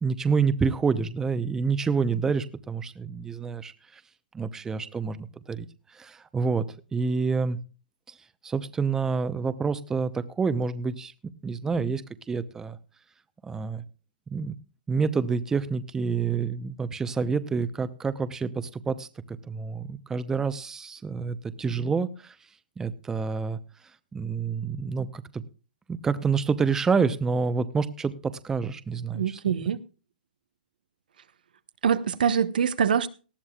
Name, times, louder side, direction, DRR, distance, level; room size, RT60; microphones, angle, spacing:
voice 1, 0.0-4.0 4.3-5.7 5.9-6.7 6.9-7.6 8.1-8.2 8.4-12.0 12.3-12.8 13.4-13.8 14.3-14.5 14.9-22.4 22.8-23.6 24.1-25.4 25.9-29.4, right 5 dB, 10° right, 0.8 m, -28 dB
voice 2, 29.1-29.8 31.8-33.1, right 7 dB, 80° right, 1.1 m, -24 dB
19.0 x 13.0 x 2.4 m
hypercardioid pair, 140°, 5 cm